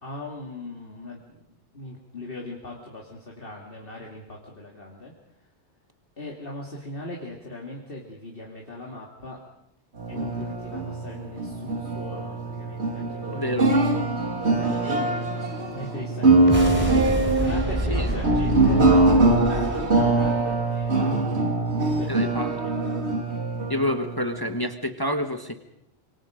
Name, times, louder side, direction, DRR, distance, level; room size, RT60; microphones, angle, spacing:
voice 1, 0.0-1.4 1.7-5.1 6.2-9.4 10.1-13.7 14.4-17.0 17.3-18.9 19.2-21.2 21.7-23.1, left 2 dB, 50° left, -2 dB, 2.9 m, -40 dB
sound 1, 10.0-24.7, right 2 dB, 65° right, 2.7 m, -23 dB
voice 2, 13.3-13.7 17.9-18.1 22.1-22.5 23.7-25.5, left 1 dB, 20° left, 6 dB, 1.5 m, -28 dB
sound 2, 16.3-20.9, equal, 10° right, 4.0 m, -29 dB
26.5 x 24.5 x 5.2 m, 0.79 s
omnidirectional pair, 1.2 m